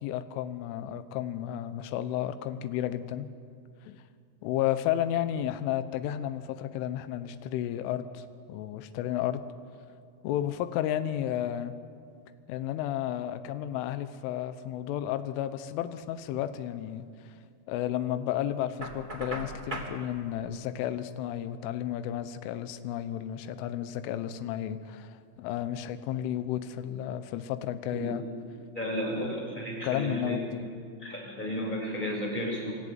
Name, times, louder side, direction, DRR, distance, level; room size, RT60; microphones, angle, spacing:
voice 1, 0.0-3.3 3.8-4.0 4.4-9.4 10.2-11.7 12.5-17.0 17.7-28.2 29.2-29.3 29.8-30.7, left 11 dB, 80° left, 11 dB, 3.4 m, -32 dB
Knock, 18.8-20.0, right 2 dB, 25° right, 1.0 m, -37 dB
voice 2, 28.7-30.4 31.0-32.7, equal, 10° left, -2 dB, 5.4 m, -33 dB
28.5 x 13.5 x 9.4 m, 2.3 s
omnidirectional pair, 5.7 m